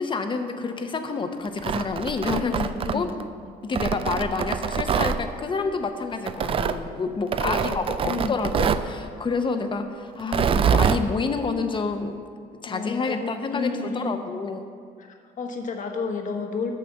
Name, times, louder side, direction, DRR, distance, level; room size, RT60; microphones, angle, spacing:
voice 1, 0.0-2.6 2.9-3.1 3.6-12.2 12.6-14.7, left 4 dB, 30° left, 7 dB, 0.8 m, -28 dB
Tearing, 1.5-3.2 3.7-5.2 6.3-6.8 7.3-8.9 10.2-11.0, right 7 dB, 35° right, 0.4 m, -24 dB
voice 2, 2.4-3.1 7.4-8.4 12.6-14.2 15.0-16.7, left 4 dB, 50° left, 4 dB, 1.3 m, -31 dB
9.4 x 6.6 x 6.6 m, 2.2 s
cardioid pair, 110°, 17 cm